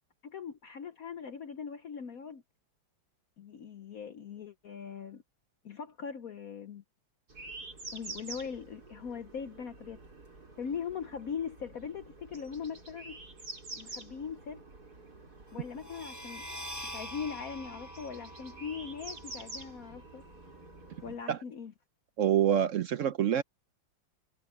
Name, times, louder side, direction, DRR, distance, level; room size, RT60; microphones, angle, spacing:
voice 1, 0.2-2.4 3.4-5.2 5.6-6.8 7.9-10.0 10.6-13.2 13.7-14.6 15.5-16.4 16.8-20.2 21.0-21.7, left 6 dB, 60° left, 1.1 m, -40 dB
sound 1, 7.3-21.2, right 2 dB, 50° right, 5.1 m, -48 dB
sound 2, 15.7-21.2, equal, 10° left, 7.9 m, -46 dB
voice 2, 22.2-23.4, right 10 dB, 75° right, 0.7 m, -26 dB
omnidirectional pair, 2.1 m